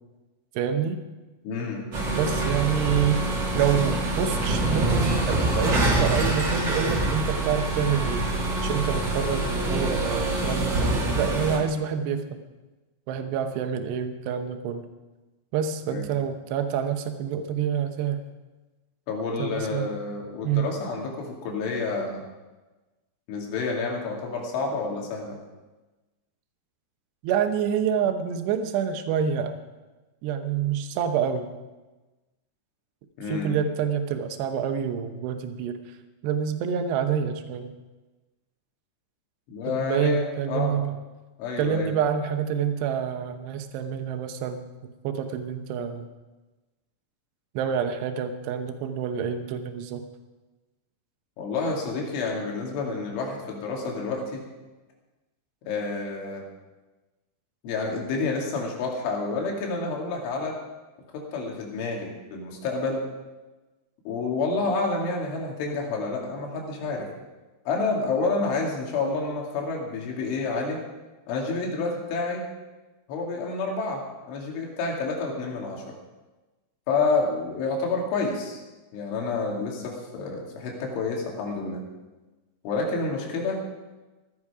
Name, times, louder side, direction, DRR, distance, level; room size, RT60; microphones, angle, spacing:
voice 1, 0.6-1.0 2.2-3.3 3.5-8.2 8.6-12.4 13.1-14.9 15.5-18.2 19.4-20.0 20.4-20.6 27.2-29.6 30.2-31.5 33.3-35.8 36.2-37.7 39.7-41.0 41.6-44.7 45.0-46.1 47.5-50.0, right 7 dB, 75° right, 7 dB, 2.9 m, -27 dB
voice 2, 1.4-1.9 15.9-16.1 19.1-22.2 23.3-25.4 33.2-33.6 39.5-40.8 41.4-41.9 51.4-54.5 55.7-56.4 57.6-60.6 61.1-63.1 64.1-67.1 67.7-70.8 71.3-72.5 73.1-75.9 76.9-78.6 78.9-81.8 82.6-83.6, left 3 dB, 85° left, -1 dB, 4.9 m, -29 dB
sound 1, 1.9-11.6, right 2 dB, 35° right, 1.9 m, -25 dB
16.0 x 12.5 x 4.9 m, 1.2 s
omnidirectional pair, 5.4 m